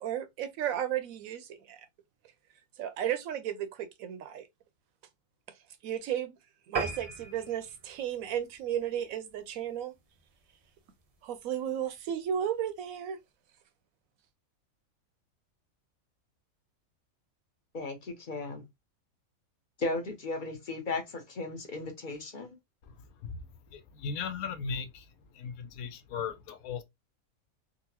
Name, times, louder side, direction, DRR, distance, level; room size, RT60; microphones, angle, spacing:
voice 1, 0.0-1.9 2.8-4.5 5.8-6.4 6.7-9.9 11.2-13.2, right 10 dB, 80° right, 1.0 m, -34 dB
sound 1, 6.7-9.5 10.0-10.2 10.6-10.7 11.0-11.1 11.3-11.4, right 4 dB, 50° right, 0.4 m, -38 dB
voice 2, 17.7-18.6 19.8-22.5, left 3 dB, 40° left, 0.8 m, -36 dB
voice 3, 23.7-25.0 25.3-26.8, left 6 dB, 85° left, 1.1 m, -37 dB
3.9 x 2.1 x 2.8 m
omnidirectional pair, 1.5 m